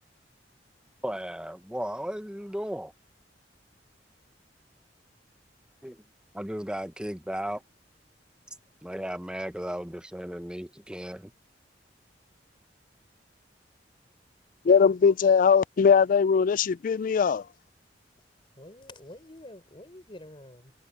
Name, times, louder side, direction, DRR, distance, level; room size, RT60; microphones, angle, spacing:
voice 1, 1.0-2.9 5.8-6.0 6.3-7.6 8.8-11.3, equal, 5° right, 0.9 m, -35 dB
voice 2, 14.6-17.4, left 6 dB, 45° left, 0.3 m, -20 dB
voice 3, 18.5-20.7, left 1 dB, 30° left, 4.4 m, -47 dB
head